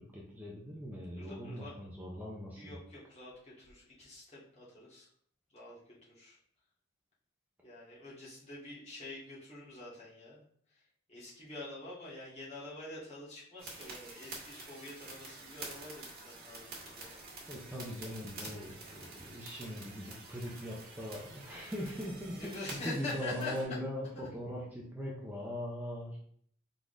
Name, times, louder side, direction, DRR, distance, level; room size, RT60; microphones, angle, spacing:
voice 1, 0.1-2.7 17.1-22.5 22.8-26.2, equal, 10° right, -4 dB, 0.6 m, -41 dB
voice 2, 1.2-1.7 2.5-5.1 5.5-6.4 7.6-10.4 10.7-10.8 11.1-17.1 18.4-18.8 22.3-23.8 24.1-24.3, left 2 dB, 30° left, -8 dB, 1.8 m, -46 dB
sound 1, 13.6-23.6, right 3 dB, 45° right, 1.6 m, -48 dB
4.6 x 3.8 x 2.6 m, 0.63 s
head